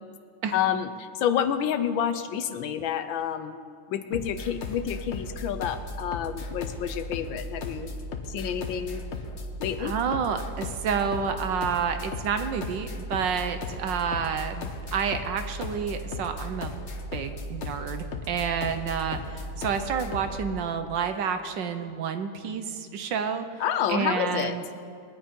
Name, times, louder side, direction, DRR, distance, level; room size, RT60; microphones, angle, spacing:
voice 1, 0.5-3.6 3.9-8.0 8.3-9.0 9.6-9.9 23.6-24.6, left 9 dB, 75° left, 9 dB, 1.4 m, -29 dB
sound 1, 4.1-20.4, left 2 dB, 45° left, 1.0 m, -36 dB
voice 2, 9.8-16.7 17.1-23.5 23.9-24.6, right 6 dB, 65° right, 8 dB, 1.4 m, -29 dB
20.5 x 9.9 x 5.3 m, 2.3 s
omnidirectional pair, 2.2 m